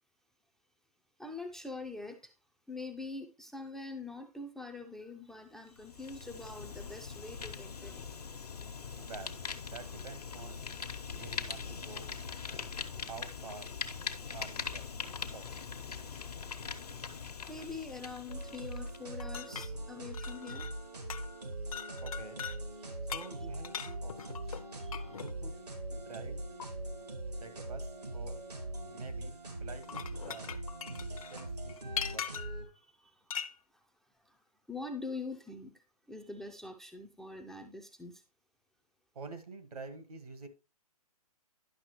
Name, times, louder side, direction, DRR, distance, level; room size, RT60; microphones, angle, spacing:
voice 1, 1.2-2.3 2.7-8.1 17.5-20.7 24.7-25.1 30.5-30.6 31.1-31.2 32.7-33.3 34.2-34.4 34.7-38.2, left 3 dB, ahead, 0.4 m, -44 dB
Fire, 5.7-19.0, left 5 dB, 80° left, 1.1 m, -42 dB
voice 2, 9.0-10.6 11.1-12.1 12.9-13.7 14.3-14.8 15.3-15.4 22.0-22.4 23.1-24.4 25.1-25.6 25.9-26.4 27.4-28.4 28.9-30.5 31.0-31.8 32.1-32.3 39.1-40.5, right 4 dB, 70° right, 1.5 m, -48 dB
sound 1, 18.3-32.6, right 1 dB, 90° right, 2.2 m, -41 dB
sound 2, 19.2-20.8 21.1-21.4 21.7-22.6 23.1-25.3 26.6-26.7 29.7-32.6 33.3-33.5, left 8 dB, 65° left, 0.7 m, -41 dB
10.5 x 6.0 x 3.1 m
figure-of-eight pair, 125°, 20 cm